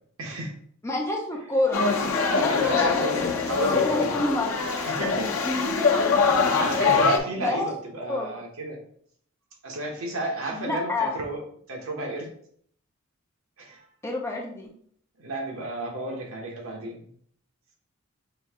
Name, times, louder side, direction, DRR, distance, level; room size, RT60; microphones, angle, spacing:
voice 1, 0.2-0.5 2.5-3.2 3.5-4.1 4.8-5.4 6.2-8.8 9.6-11.4 11.7-12.3 13.6-13.9 15.2-17.0, right 2 dB, 75° right, 1 dB, 1.1 m, -32 dB
voice 2, 0.8-1.8 2.3-4.6 5.4-5.7 7.4-7.7 8.1-8.3 10.5-11.1 14.0-14.7, left 2 dB, 15° left, -1 dB, 0.7 m, -28 dB
sound 1, 1.7-7.2, left 5 dB, 75° left, 0.8 m, -23 dB
5.4 x 2.7 x 3.6 m, 0.62 s
head